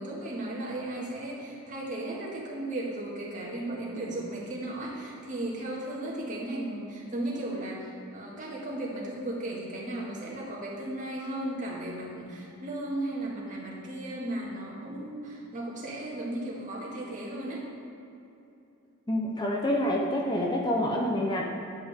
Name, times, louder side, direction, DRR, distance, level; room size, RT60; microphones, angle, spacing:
voice 1, 0.0-17.6, right 1 dB, 40° right, -6 dB, 2.0 m, -35 dB
voice 2, 19.1-21.4, left 1 dB, 20° left, -1 dB, 0.7 m, -27 dB
10.0 x 8.5 x 3.6 m, 2.7 s
head